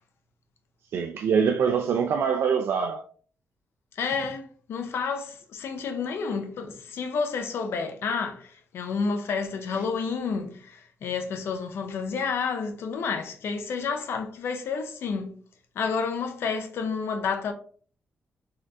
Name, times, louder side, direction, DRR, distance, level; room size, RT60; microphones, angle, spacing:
voice 1, 0.9-3.1, right 6 dB, 80° right, 0.3 m, -24 dB
voice 2, 4.0-15.4 15.8-17.5, left 5 dB, 85° left, 0.5 m, -30 dB
4.1 x 2.4 x 2.7 m
wide cardioid pair, 145°, 4 cm